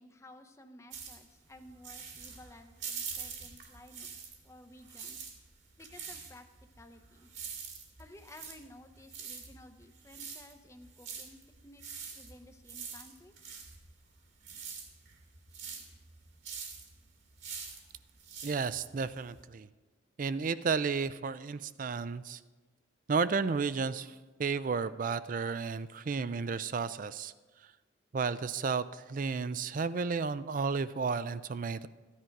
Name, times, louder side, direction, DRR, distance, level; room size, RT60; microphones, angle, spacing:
voice 1, 0.0-5.3 5.8-6.5 6.8-7.3 8.0-13.3, left 1 dB, 15° left, 7 dB, 0.7 m, -55 dB
sound 1, 0.9-4.5 4.8-19.4, right 6 dB, 70° right, 2.2 m, -45 dB
voice 2, 18.4-19.7 20.2-22.4 23.1-27.3 28.1-31.9, right 5 dB, 45° right, 15 dB, 0.4 m, -32 dB
14.0 x 10.0 x 4.6 m, 1.3 s
head